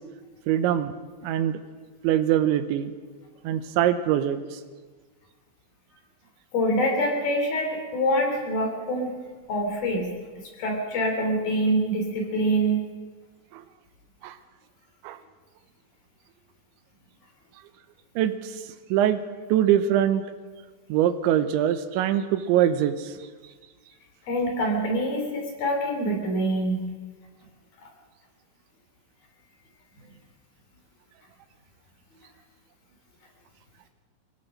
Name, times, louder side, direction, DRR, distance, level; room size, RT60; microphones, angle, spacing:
voice 1, 0.5-0.9 1.2-1.6 2.0-2.9 3.4-4.6 13.5-13.6 14.2-14.4 15.0-15.2 18.2-18.5 18.9-19.2 19.5-20.2 20.9-23.1, right 11 dB, 80° right, 10 dB, 3.2 m, -23 dB
voice 2, 6.5-9.1 9.5-10.1 10.6-12.9 24.2-26.9, equal, 55° left, 2 dB, 5.0 m, -25 dB
25.0 x 17.0 x 6.4 m, 1.4 s
omnidirectional pair, 5.3 m